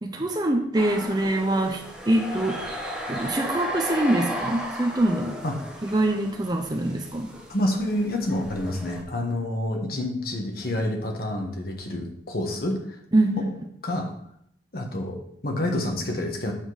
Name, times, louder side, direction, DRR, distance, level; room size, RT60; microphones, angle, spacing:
voice 1, 0.0-2.6 3.1-5.4 5.8-7.3 13.1-13.5, right 1 dB, 20° right, 3 dB, 0.6 m, -24 dB
sound 1, 0.7-9.0, equal, 5° right, 1.0 m, -35 dB
voice 2, 7.5-13.0 13.4-13.5 13.8-14.1 14.7-16.5, left 1 dB, 55° left, 2 dB, 1.3 m, -28 dB
7.3 x 3.7 x 6.2 m, 0.70 s
head